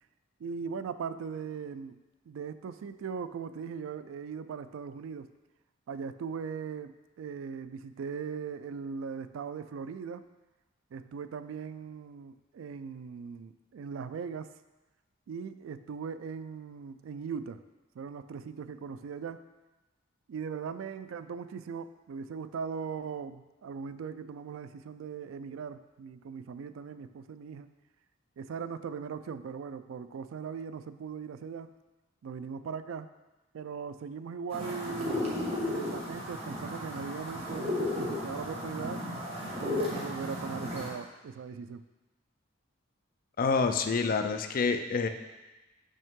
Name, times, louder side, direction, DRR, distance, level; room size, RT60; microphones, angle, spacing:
voice 1, 0.4-2.0 2.3-5.3 5.9-10.3 10.9-14.5 15.3-17.6 18.0-19.4 20.3-27.7 28.4-31.7 32.2-33.1 33.5-35.3 35.6-39.1 39.6-41.8, right 6 dB, 80° right, 12 dB, 0.3 m, -39 dB
sound 1, 34.5-40.9, left 1 dB, 30° right, 1.3 m, -34 dB
voice 2, 43.4-45.1, left 4 dB, 45° left, 7 dB, 0.4 m, -27 dB
6.5 x 5.3 x 3.7 m, 1.1 s
head